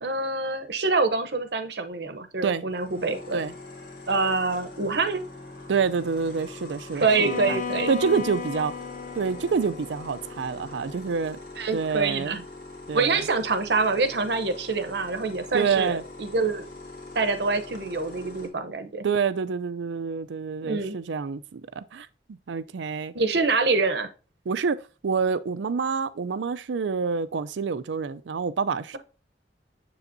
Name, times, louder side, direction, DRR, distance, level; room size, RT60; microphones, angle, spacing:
voice 1, 0.0-3.4 4.1-5.2 7.0-7.9 11.6-12.4 12.9-16.7 17.1-19.0 20.6-20.9 23.1-24.1, right 3 dB, 65° right, 0.8 m, -25 dB
sound 1, 2.7-18.5, left 2 dB, 60° left, 1.7 m, -43 dB
voice 2, 5.7-7.6 7.9-8.7 9.1-11.4 11.7-12.4 12.9-13.2 15.5-16.0 19.0-23.1 24.5-24.8 25.0-29.0, right 5 dB, 90° right, 0.4 m, -27 dB
Bowed string instrument, 7.0-11.0, left 6 dB, 45° left, 0.3 m, -35 dB
7.0 x 6.9 x 2.6 m
head